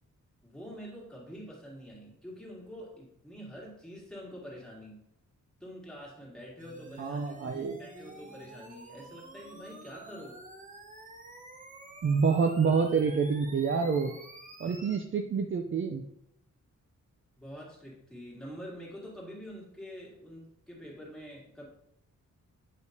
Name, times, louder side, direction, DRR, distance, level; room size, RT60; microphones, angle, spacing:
voice 1, 0.4-5.0 5.6-10.4 17.4-21.7, equal, ahead, -5 dB, 1.9 m, -46 dB
sound 1, 6.6-15.0, right 2 dB, 25° right, 0.9 m, -49 dB
voice 2, 7.0-7.8 12.0-14.1 14.6-16.0, right 5 dB, 40° right, 4 dB, 0.5 m, -27 dB
8.2 x 5.0 x 2.7 m, 0.77 s
wide cardioid pair, 145°, 31 cm